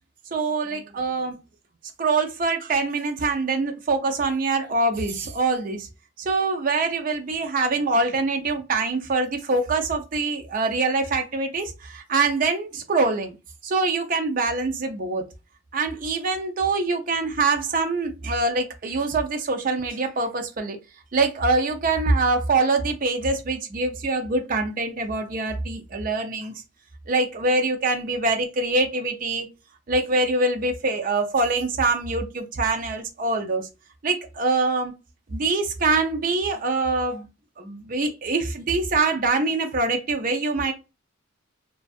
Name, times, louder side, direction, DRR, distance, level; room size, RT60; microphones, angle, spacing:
voice 1, 0.3-1.4 2.0-5.9 6.2-13.4 13.6-15.2 15.7-20.8 21.1-26.5 27.1-29.5 29.9-33.7 34.0-34.9 35.3-37.3 37.6-40.7, right 3 dB, 40° right, 0.4 m, -24 dB
2.5 x 2.3 x 2.3 m
head